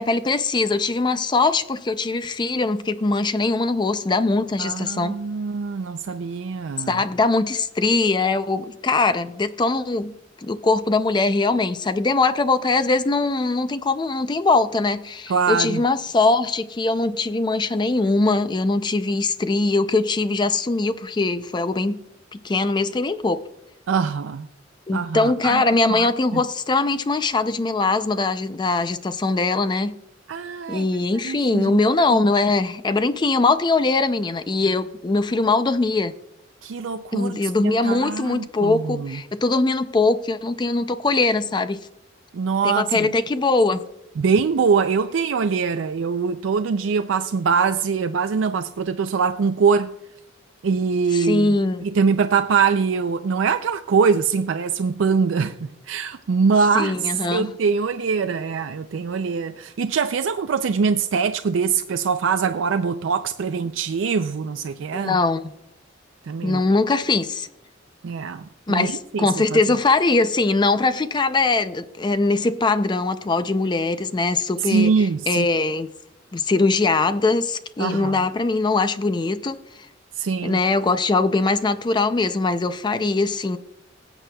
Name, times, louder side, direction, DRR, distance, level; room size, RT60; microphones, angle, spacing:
voice 1, 0.0-5.2 6.9-22.0 22.3-23.4 24.9-30.0 30.7-36.1 37.1-41.9 42.6-43.8 51.1-51.9 56.7-57.5 64.9-65.5 66.4-67.5 68.7-74.9 75.3-75.9 76.3-79.9 80.4-83.6, left 3 dB, 25° left, 0.4 m, -21 dB
voice 2, 4.6-7.0 15.3-15.8 23.9-24.5 24.9-25.6 25.9-26.4 30.3-30.9 31.2-31.8 36.6-39.2 42.3-43.1 44.2-49.9 50.6-51.6 51.8-65.2 66.3-66.6 68.0-69.6 74.6-75.5 77.8-78.2 80.2-80.6, right 5 dB, 85° right, 0.4 m, -23 dB
19.0 x 7.9 x 2.3 m
head